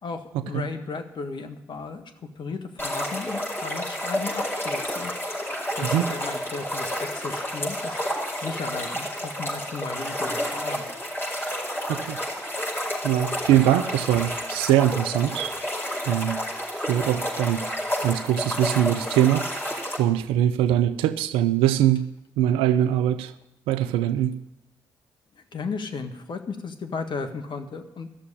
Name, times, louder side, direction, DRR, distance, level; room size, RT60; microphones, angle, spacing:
voice 1, 0.0-2.0 2.3-5.1 5.4-8.0 8.3-10.8 25.3-28.1, left 4 dB, 60° left, 6 dB, 1.6 m, -35 dB
sound 1, 2.8-20.0, equal, 25° left, 5.2 m, -30 dB
voice 2, 13.0-15.5 16.1-16.4 16.9-17.7 18.0-22.1 22.4-23.3 23.7-24.4, right 11 dB, 85° right, 14 dB, 0.6 m, -22 dB
13.0 x 7.0 x 9.8 m, 0.89 s
hypercardioid pair, 45°, 9 cm